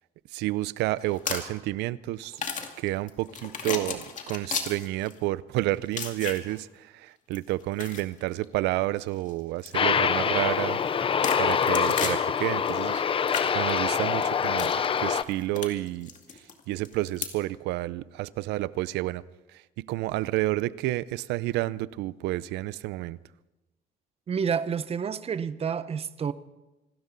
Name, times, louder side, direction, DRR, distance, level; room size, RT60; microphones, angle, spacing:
voice 1, 0.3-2.4 2.8-11.1 11.4-14.7 15.0-16.1 16.7-19.2 19.5-23.2, right 17 dB, 90° right, 18 dB, 0.6 m, -30 dB
sound 1, 1.0-1.6 2.2-5.3 5.9-6.6 7.3-8.4 9.0-9.3 9.6-9.7 10.7-12.7 13.1-17.3, left 6 dB, 45° left, 2.3 m, -35 dB
Aircraft, 9.7-15.2, left 7 dB, 30° left, 0.6 m, -25 dB
voice 2, 24.3-26.3, right 7 dB, 35° right, 15 dB, 0.8 m, -29 dB
26.5 x 13.0 x 4.0 m, 1.0 s
cardioid pair, 110°, 17 cm